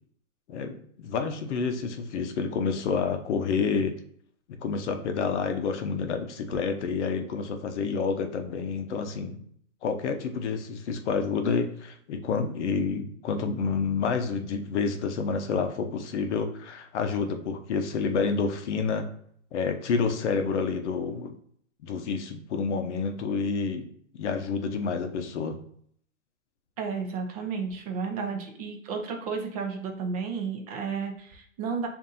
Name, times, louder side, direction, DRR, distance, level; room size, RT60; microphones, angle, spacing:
voice 1, 0.5-3.9 4.5-9.4 9.8-19.1 19.5-21.3 21.8-23.9 24.2-25.6, left 5 dB, 55° left, 7 dB, 0.7 m, -29 dB
voice 2, 26.8-31.9, right 5 dB, 30° right, 3 dB, 0.6 m, -32 dB
6.9 x 2.6 x 2.6 m, 0.63 s
hypercardioid pair, 145°, 41 cm